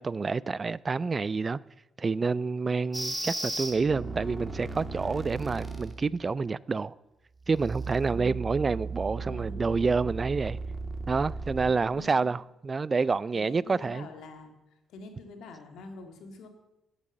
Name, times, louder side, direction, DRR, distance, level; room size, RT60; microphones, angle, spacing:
voice 1, 0.0-1.6 2.0-6.9 7.5-10.6 11.1-14.1, right 4 dB, 30° right, 0.3 m, -28 dB
sound 1, 2.9-6.0 7.4-11.7, right 3 dB, 10° right, 2.0 m, -36 dB
voice 2, 8.0-8.4 9.2-9.9 11.6-12.3 13.3-14.5 14.9-16.5, left 3 dB, 80° left, 2.1 m, -46 dB
11.0 x 8.2 x 7.3 m
cardioid pair, 90°, 0 cm